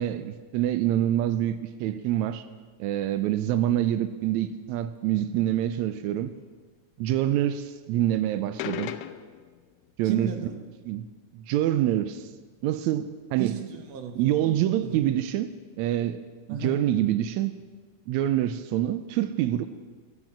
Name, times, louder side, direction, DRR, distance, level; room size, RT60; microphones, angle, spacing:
voice 1, 0.0-2.4 2.8-6.3 7.0-9.0 10.0-10.3 10.8-11.1 11.3-12.3 12.6-13.6 14.2-15.5 15.8-16.2 16.5-17.5 18.1-19.6, right 12 dB, 85° right, 11 dB, 1.6 m, -26 dB
sound 1, 8.6-9.6, left 14 dB, 90° left, 2.3 m, -35 dB
voice 2, 10.0-10.6 13.4-15.0 16.5-16.8, right 6 dB, 60° right, 5 dB, 2.1 m, -35 dB
14.5 x 10.5 x 7.4 m, 1.4 s
omnidirectional pair, 3.9 m